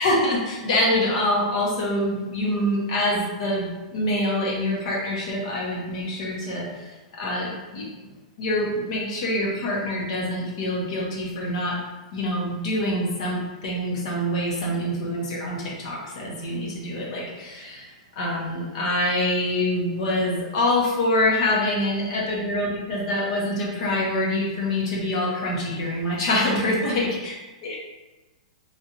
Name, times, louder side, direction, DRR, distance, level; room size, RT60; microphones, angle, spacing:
voice 1, 0.0-7.9 8.4-11.8 12.1-27.4 27.6-27.8, left 1 dB, 60° left, -3 dB, 1.1 m, -25 dB
3.3 x 2.7 x 2.9 m, 1.1 s
hypercardioid pair, 135°, 4 cm